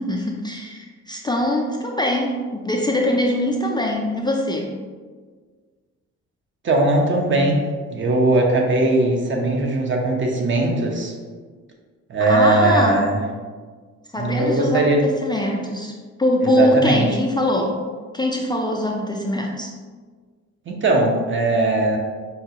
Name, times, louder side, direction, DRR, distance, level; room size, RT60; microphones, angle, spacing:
voice 1, 0.0-4.7 12.2-13.0 14.1-15.9 16.2-17.8 18.1-19.7, left 1 dB, 15° left, 0 dB, 0.3 m, -22 dB
voice 2, 6.6-7.6 7.9-11.1 12.1-13.2 14.1-15.1 16.4-17.1 20.7-22.0, right 2 dB, 40° right, 1 dB, 0.8 m, -19 dB
5.4 x 2.3 x 2.8 m, 1.5 s
cardioid pair, 90°, 30 cm